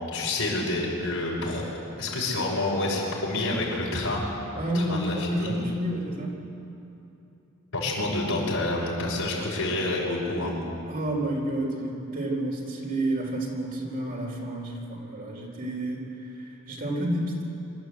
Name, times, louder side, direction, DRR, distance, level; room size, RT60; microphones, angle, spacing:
voice 1, 0.1-1.7 2.0-4.2 4.7-5.6 7.7-10.6, left 2 dB, 80° left, -5 dB, 5.6 m, -28 dB
voice 2, 4.6-6.3 10.9-17.4, right 1 dB, 45° right, -1 dB, 3.9 m, -30 dB
26.5 x 12.5 x 8.3 m, 2.8 s
head